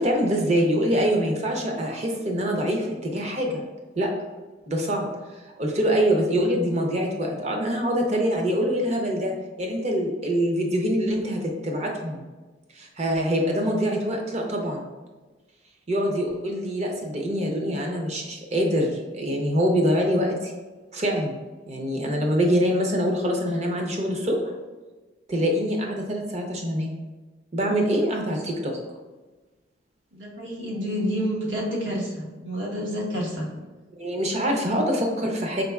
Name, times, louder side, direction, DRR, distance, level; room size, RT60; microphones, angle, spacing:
voice 1, 0.0-3.6 4.0-4.1 4.7-5.1 5.6-12.2 12.7-14.8 15.9-20.5 20.9-21.4 21.7-24.4 25.3-26.9 27.5-28.8 34.0-35.6, equal, 35° right, 1 dB, 0.6 m, -24 dB
voice 2, 30.1-33.5, equal, 75° right, -4 dB, 1.2 m, -29 dB
5.2 x 3.9 x 2.3 m, 1.2 s
head